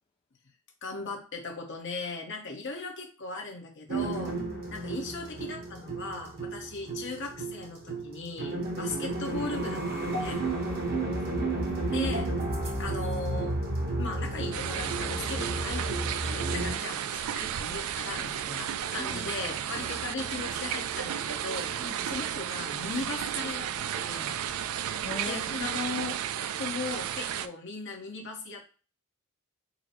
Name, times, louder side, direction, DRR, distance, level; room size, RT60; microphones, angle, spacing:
voice 1, 0.8-4.4 4.7-10.4 11.9-12.3 12.6-13.6 14.0-24.4 25.3-26.2 26.6-28.7, left 3 dB, 60° left, 2 dB, 1.1 m, -38 dB
sound 1, 3.9-16.7, right 2 dB, 45° right, 0.9 m, -32 dB
voice 2, 4.4-4.7 10.7-11.8 19.0-19.3 21.8-22.0 25.0-26.0 27.3-27.4, left 2 dB, 25° left, -1 dB, 0.4 m, -42 dB
sound 2, 14.5-27.5, right 10 dB, 90° right, 0.3 m, -33 dB
3.9 x 2.1 x 4.3 m, 0.36 s
head